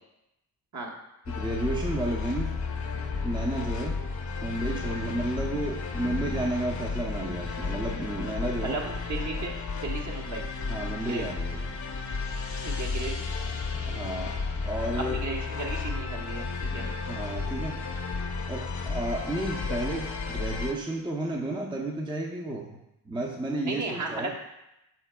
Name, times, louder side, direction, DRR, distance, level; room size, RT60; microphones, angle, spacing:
sound 1, 1.3-20.7, left 4 dB, 45° left, 0.8 m, -33 dB
voice 1, 1.3-2.6 3.2-4.0 4.4-8.8 10.7-11.8 13.9-14.3 14.6-15.2 17.0-17.8 18.5-22.8 23.1-24.3, right 1 dB, 10° right, -1 dB, 0.6 m, -32 dB
voice 2, 8.6-10.4 11.0-11.2 12.6-13.3 15.0-16.9 23.6-24.3, right 3 dB, 45° right, -1 dB, 1.0 m, -35 dB
5.6 x 4.0 x 2.2 m, 0.89 s
cardioid pair, 55°, 42 cm